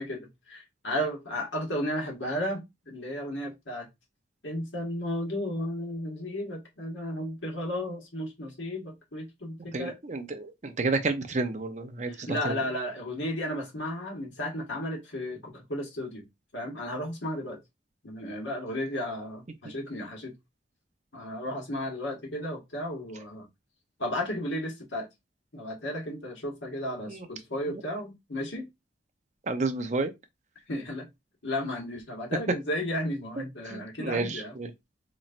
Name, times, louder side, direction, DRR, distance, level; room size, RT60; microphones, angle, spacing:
voice 1, 0.0-3.9 4.4-10.0 12.0-16.3 16.5-17.6 18.0-20.3 21.1-23.5 24.0-25.1 25.5-28.7 30.7-31.1 31.4-34.5, left 1 dB, 85° left, 1.5 m, -34 dB
voice 2, 9.7-12.6 19.6-19.7 27.1-27.3 29.5-30.1 33.7-34.7, right 3 dB, 40° right, 0.6 m, -31 dB
4.2 x 3.0 x 2.5 m
head